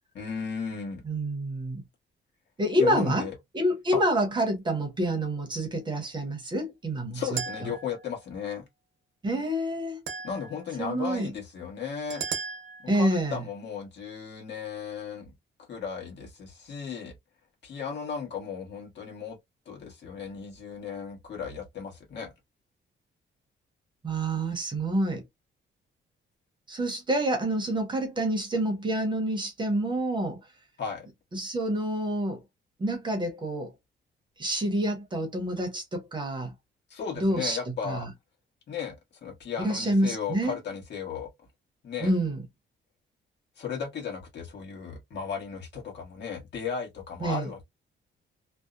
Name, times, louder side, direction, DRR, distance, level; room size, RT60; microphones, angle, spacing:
voice 1, 0.1-1.0 2.8-3.3 3.9-4.0 7.1-8.6 10.2-12.2 12.8-15.3 15.7-17.1 17.6-19.4 19.7-22.3 30.8-31.1 36.9-38.1 38.7-38.9 39.2-41.3 41.8-42.1 43.6-47.6, left 6 dB, 60° left, 1.2 m, -35 dB
voice 2, 1.0-1.8 2.6-3.2 3.5-7.4 9.2-10.0 10.8-11.3 12.9-13.4 24.0-25.2 26.7-30.4 31.3-32.4 32.8-33.7 34.4-36.5 37.2-37.6 37.8-38.1 39.6-40.5 42.0-42.4 47.2-47.4, right 1 dB, 20° right, 0.7 m, -27 dB
sound 1, 7.4-8.2 10.1-10.8 12.1-13.1, right 6 dB, 75° right, 0.8 m, -36 dB
2.7 x 2.0 x 2.3 m
wide cardioid pair, 180°, 20 cm